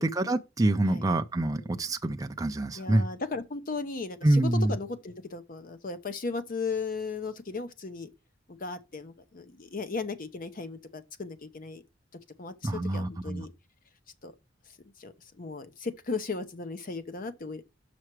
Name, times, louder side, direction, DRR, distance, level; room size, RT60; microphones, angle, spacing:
voice 1, 0.0-3.1 4.2-4.8 12.6-13.4, right 1 dB, 20° right, 0.4 m, -26 dB
voice 2, 2.7-8.1 8.5-11.8 12.4-13.5 14.2-14.3 15.0-17.6, left 4 dB, 45° left, 0.8 m, -36 dB
6.0 x 5.6 x 4.6 m
head